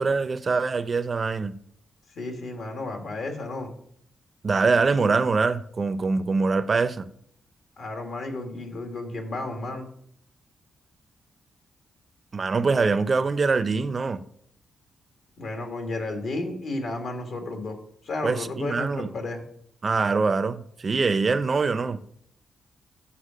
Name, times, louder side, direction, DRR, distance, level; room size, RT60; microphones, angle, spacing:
voice 1, 0.0-1.6 4.4-7.1 12.3-14.2 18.2-19.1 19.8-22.0, right 4 dB, 40° right, 0.5 m, -24 dB
voice 2, 2.2-3.7 7.8-9.9 15.4-17.8 18.0-19.5, left 2 dB, 70° left, 1.7 m, -32 dB
8.2 x 5.8 x 5.0 m
cardioid pair, 90°, 0 cm